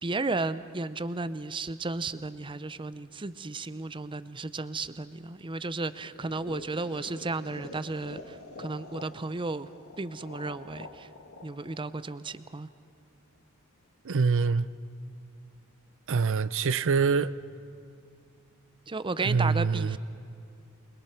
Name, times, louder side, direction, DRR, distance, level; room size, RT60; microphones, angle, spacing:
voice 1, 0.0-9.7 10.0-11.1 11.4-12.7 18.9-20.0, right 3 dB, 25° right, 0.6 m, -34 dB
sound 1, 6.0-12.9, left 2 dB, 75° left, 2.1 m, -47 dB
voice 2, 14.0-14.7 16.1-17.4 19.2-20.0, right 5 dB, 65° right, 0.6 m, -25 dB
28.5 x 22.0 x 5.9 m
head